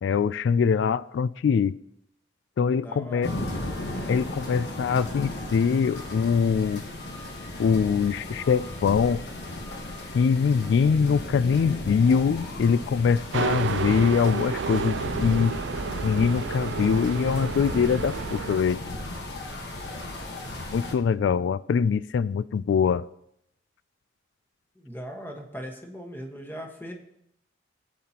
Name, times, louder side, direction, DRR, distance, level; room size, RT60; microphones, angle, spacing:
voice 1, 0.0-1.8 2.6-3.3 4.1-6.8 7.6-9.2 10.1-15.5 16.0-18.8 20.7-23.1, left 6 dB, 80° left, 18 dB, 0.3 m, -23 dB
voice 2, 2.8-3.3 24.8-26.9, equal, 10° left, 1 dB, 1.4 m, -39 dB
sound 1, 3.2-20.9, left 1 dB, 65° left, 1.3 m, -35 dB
sound 2, 13.3-18.6, right 6 dB, 80° right, 0.4 m, -31 dB
18.0 x 8.5 x 2.9 m, 0.77 s
head